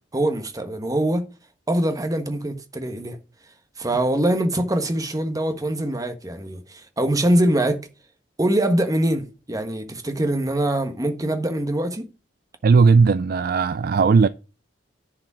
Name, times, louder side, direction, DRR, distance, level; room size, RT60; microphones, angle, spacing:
voice 1, 0.1-1.2 1.7-3.2 3.8-7.8 8.4-12.1, right 1 dB, 20° right, 1.3 m, -23 dB
voice 2, 12.6-14.3, right 4 dB, 55° right, 0.4 m, -16 dB
10.5 x 4.9 x 6.1 m
head